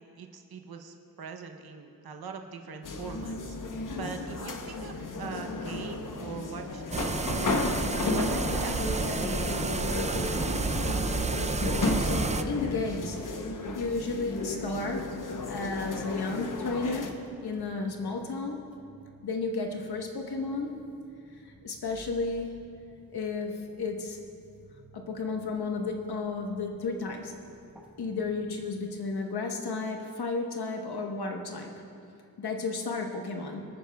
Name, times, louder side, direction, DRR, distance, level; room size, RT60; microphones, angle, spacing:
voice 1, 0.0-7.5 8.1-9.6, right 5 dB, 70° right, 4 dB, 0.8 m, -42 dB
sound 1, 2.8-17.1, left 3 dB, 55° left, 0.9 m, -33 dB
sound 2, 6.9-12.4, right 3 dB, 20° right, 0.4 m, -30 dB
sound 3, 11.9-28.7, right 1 dB, 5° right, 1.1 m, -55 dB
voice 2, 12.0-13.2 13.7-18.7 19.2-20.8 21.4-22.6 23.1-24.2 24.9-27.3 28.0-31.8 32.4-33.7, left 3 dB, 80° left, 2 dB, 1.2 m, -33 dB
24.5 x 9.4 x 2.3 m, 2.6 s
wide cardioid pair, 115°, 38 cm